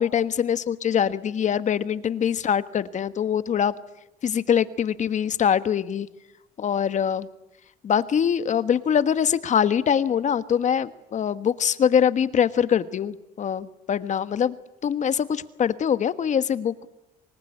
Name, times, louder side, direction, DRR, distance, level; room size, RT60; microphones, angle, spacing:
voice 1, 0.0-3.7 4.2-6.1 6.6-7.3 7.8-14.5 14.8-16.9, left 8 dB, 45° left, 13 dB, 1.4 m, -23 dB
26.5 x 20.0 x 9.9 m, 0.90 s
cardioid pair, 110°, 17 cm